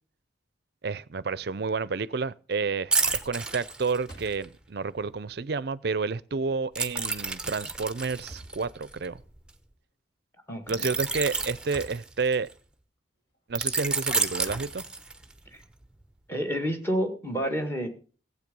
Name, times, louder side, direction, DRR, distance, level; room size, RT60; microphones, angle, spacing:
voice 1, 0.8-9.2 10.7-12.5 13.5-14.8, right 4 dB, 55° right, 0.5 m, -30 dB
sound 1, 2.6-2.9 3.2-4.8 5.5-5.6 6.1-6.2 7.1-7.3 7.8-9.2 10.7-12.2 13.3-15.6, right 1 dB, 55° left, 3.0 m, -50 dB
sound 2, 2.9-4.4 6.7-9.5 10.7-12.5 13.5-15.4 15.8-16.0, right 4 dB, 5° right, 0.8 m, -30 dB
voice 2, 10.5-10.9 15.5-15.6 16.3-17.9, equal, 10° left, 1.7 m, -29 dB
15.5 x 8.2 x 5.3 m
head